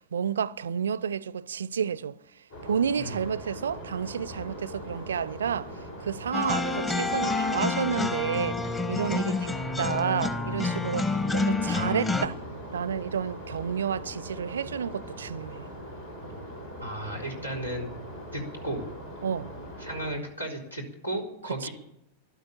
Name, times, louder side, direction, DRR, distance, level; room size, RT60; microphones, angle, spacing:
voice 1, 0.0-2.2 2.6-5.7 6.0-12.4 12.7-15.7 19.2-19.5 21.6-21.7, right 7 dB, 65° right, 0.5 m, -30 dB
sound 1, 2.5-20.2, equal, 65° left, 5.5 m, -41 dB
sound 2, 6.3-12.3, left 3 dB, 15° left, 1.3 m, -28 dB
voice 2, 16.8-17.9 18.3-18.8 19.8-21.7, right 1 dB, 85° left, 4.0 m, -34 dB
13.0 x 12.0 x 8.8 m
figure-of-eight pair, 90°, 0 cm